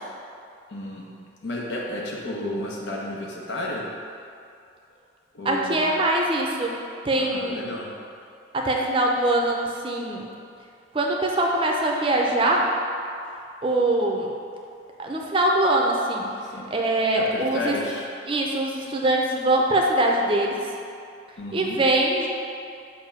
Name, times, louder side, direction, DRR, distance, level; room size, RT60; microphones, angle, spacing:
voice 1, 0.7-1.0 1.4-3.8 5.3-5.8 7.2-7.9 16.5-16.7 17.1-18.1 21.4-21.8, left 1 dB, 70° left, -3 dB, 0.9 m, -32 dB
voice 2, 5.4-7.7 8.5-9.6 9.8-10.2 10.9-12.7 13.6-14.3 15.0-16.3 16.7-17.8 18.3-20.6 21.5-22.3, right 1 dB, 30° right, -1 dB, 0.5 m, -23 dB
6.7 x 2.6 x 5.6 m, 2.5 s
head